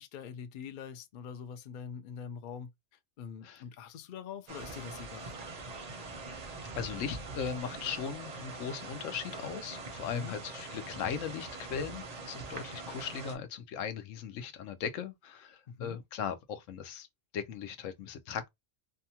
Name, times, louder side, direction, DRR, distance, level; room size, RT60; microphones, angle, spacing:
voice 1, 0.0-2.7 3.2-5.4 10.0-10.4 15.7-16.0, left 7 dB, 60° left, 0.5 m, -44 dB
sound 1, 4.5-13.4, right 3 dB, 40° right, 0.6 m, -43 dB
voice 2, 6.7-17.1 17.3-18.5, left 7 dB, 90° left, 1.0 m, -38 dB
2.8 x 2.3 x 2.7 m
omnidirectional pair, 1.3 m